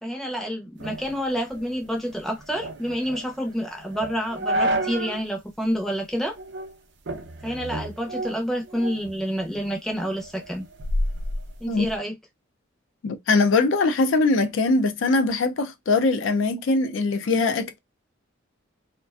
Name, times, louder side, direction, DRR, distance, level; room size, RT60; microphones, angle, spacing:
voice 1, 0.0-6.4 7.4-10.7 11.6-12.1, equal, ahead, 0.5 m, -28 dB
sound 1, 0.8-5.3 5.6-5.7 6.3-6.7 7.1-9.1 9.5-12.0, right 1 dB, 60° right, 0.5 m, -30 dB
voice 2, 13.0-17.8, left 3 dB, 65° left, 0.4 m, -22 dB
2.4 x 2.2 x 2.3 m
head